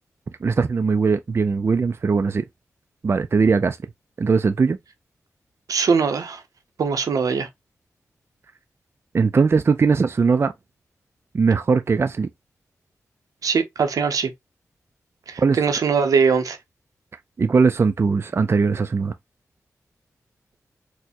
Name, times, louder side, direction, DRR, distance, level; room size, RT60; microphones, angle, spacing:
voice 1, 0.4-2.5 3.0-3.8 4.2-4.8 9.1-10.5 11.3-12.3 15.4-15.6 17.4-19.1, right 5 dB, 45° right, 0.3 m, -20 dB
voice 2, 5.7-6.4 6.8-7.5 13.4-14.3 15.3-16.6, right 5 dB, 85° right, 0.6 m, -21 dB
4.2 x 2.1 x 2.7 m
cardioid pair, 55°, 6 cm